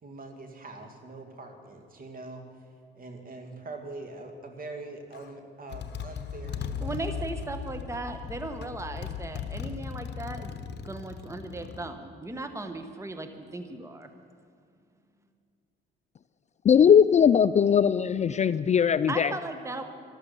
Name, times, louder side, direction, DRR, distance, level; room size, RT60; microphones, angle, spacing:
voice 1, 0.0-2.4 2.9-7.1, right 2 dB, 45° right, 4 dB, 2.3 m, -43 dB
Motorcycle, 5.1-5.3 5.7-11.9, left 7 dB, 60° left, 1.0 m, -37 dB
voice 2, 6.8-10.6 10.8-14.1 19.1-19.8, right 2 dB, 15° right, 7 dB, 1.1 m, -37 dB
voice 3, 16.7-19.3, left 8 dB, 35° left, 14 dB, 0.4 m, -20 dB
13.5 x 12.5 x 6.9 m, 2.4 s
cardioid pair, 90°, 20 cm